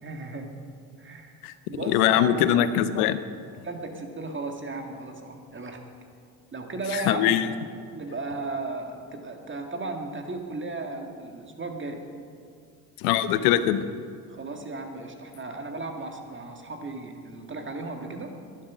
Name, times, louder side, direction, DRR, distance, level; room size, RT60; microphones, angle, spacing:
voice 1, 0.0-0.5 1.0-2.5 3.6-5.8 6.5-7.3 7.9-12.0 14.3-18.3, right 3 dB, 25° right, 4 dB, 2.0 m, -35 dB
voice 2, 1.8-3.2 6.9-7.5 13.0-13.9, left 11 dB, 80° left, 13 dB, 0.8 m, -22 dB
11.5 x 11.0 x 6.2 m, 2.2 s
hypercardioid pair, 70°, 45 cm